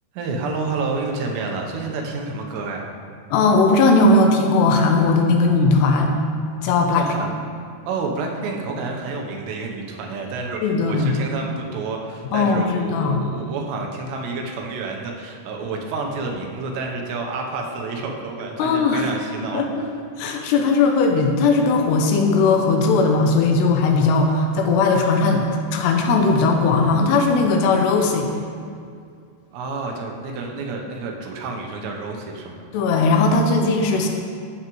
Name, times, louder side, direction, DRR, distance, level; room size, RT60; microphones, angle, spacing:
voice 1, 0.1-2.9 7.0-7.4 7.9-19.6 29.5-32.7, right 3 dB, 80° right, 1 dB, 3.0 m, -29 dB
voice 2, 3.3-6.1 6.6-7.1 10.6-11.2 12.3-13.2 18.6-19.1 19.5-19.9 20.2-28.3 32.7-34.1, left 3 dB, 85° left, 3 dB, 2.8 m, -18 dB
11.0 x 8.0 x 3.0 m, 2.3 s
omnidirectional pair, 4.9 m